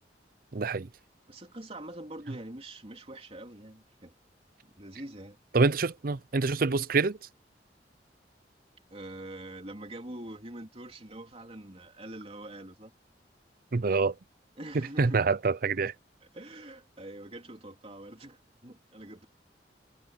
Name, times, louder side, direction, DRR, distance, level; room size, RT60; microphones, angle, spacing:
voice 1, 0.5-0.9 5.5-7.2 13.7-14.2 14.7-15.9, right 4 dB, 55° right, 0.6 m, -26 dB
voice 2, 1.3-4.1 4.8-5.4 8.9-12.9 14.6-15.2 16.3-19.3, right 1 dB, 35° right, 3.1 m, -44 dB
head